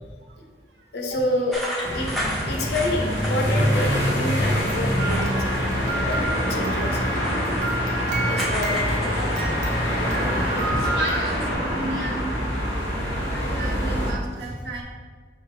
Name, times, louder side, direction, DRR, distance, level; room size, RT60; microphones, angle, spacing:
voice 1, 0.9-1.6 1.9-2.1 2.5-6.2 6.5-7.0 8.2-9.2 10.3-10.5, left 1 dB, 70° left, 1 dB, 0.6 m, -28 dB
sound 1, 1.5-4.0 4.4-5.7 6.0-10.5 10.8-11.5, equal, ahead, 0.6 m, -35 dB
sound 2, 1.8-14.1, equal, 35° left, 1.4 m, -25 dB
sound 3, 5.0-11.2, right 2 dB, 45° right, 0.7 m, -32 dB
voice 2, 10.3-12.3 13.2-14.8, right 1 dB, 80° right, -2 dB, 0.8 m, -32 dB
4.5 x 2.3 x 4.7 m, 1.5 s
head